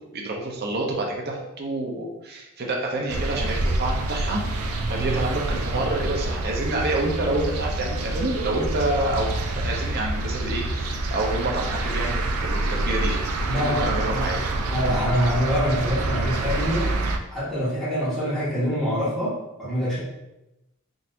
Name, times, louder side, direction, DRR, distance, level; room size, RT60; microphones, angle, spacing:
voice 1, 0.1-13.2 13.5-14.4, right 2 dB, 50° right, 0 dB, 0.7 m, -28 dB
sound 1, 3.1-17.2, right 2 dB, 85° right, 0.4 m, -27 dB
voice 2, 13.5-14.3 14.6-17.0 17.3-20.0, equal, ahead, -12 dB, 1.3 m, -25 dB
3.8 x 2.8 x 2.5 m, 0.94 s
head